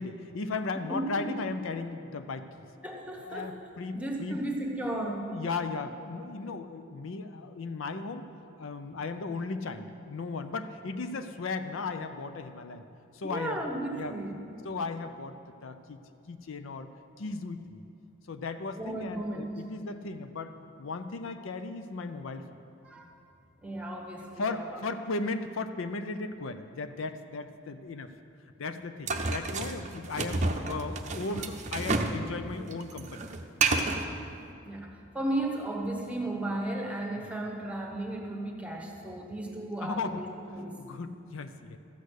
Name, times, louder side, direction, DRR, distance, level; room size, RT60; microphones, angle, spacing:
voice 1, 0.0-2.5 3.2-4.4 5.0-8.2 8.6-12.8 13.1-13.6 13.9-14.1 14.6-15.3 15.6-16.0 16.3-16.9 17.2-17.8 18.3-20.5 20.8-22.4 24.4-28.1 28.6-33.2 37.2-37.3 39.8-40.2 40.8-41.8, left 3 dB, 65° left, 9 dB, 0.5 m, -36 dB
voice 2, 0.9-1.5 2.8-3.5 3.9-5.3 13.2-14.4 18.8-19.6 22.8-23.1 23.6-24.8 34.6-40.3 40.5-40.8, right 1 dB, 5° right, 1 dB, 1.1 m, -35 dB
sound 1, 29.1-32.2 32.5-34.1, right 3 dB, 35° right, 0.6 m, -30 dB
13.5 x 8.3 x 6.5 m, 2.6 s
head